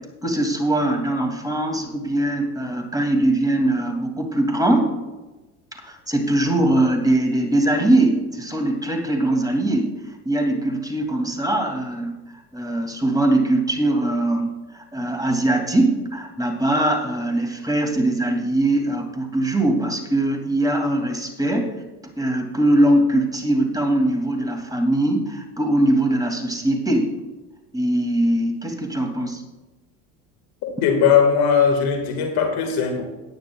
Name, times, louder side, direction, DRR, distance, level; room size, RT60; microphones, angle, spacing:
voice 1, 0.2-4.9 5.9-9.9 10.2-12.2 12.5-21.7 22.2-27.1 27.7-29.4, right 1 dB, 10° right, 3 dB, 2.4 m, -21 dB
voice 2, 30.6-33.1, left 7 dB, 60° left, 5 dB, 1.8 m, -19 dB
17.0 x 9.8 x 2.3 m, 1.1 s
hypercardioid pair, 80°, 41 cm